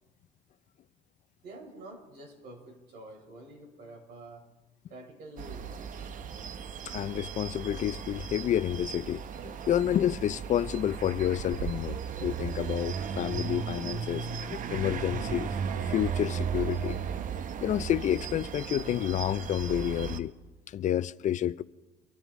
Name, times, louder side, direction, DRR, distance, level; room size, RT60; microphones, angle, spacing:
voice 1, 1.4-4.5 4.9-6.1, right 1 dB, 75° right, 3.9 m, -48 dB
sound 1, 5.4-20.2, right 7 dB, 50° right, 0.8 m, -36 dB
voice 2, 6.9-9.2 9.7-15.5 15.9-17.0 17.6-20.3 20.7-21.6, left 11 dB, 45° left, 0.4 m, -29 dB
25.0 x 13.5 x 3.7 m
cardioid pair, 110°, 17 cm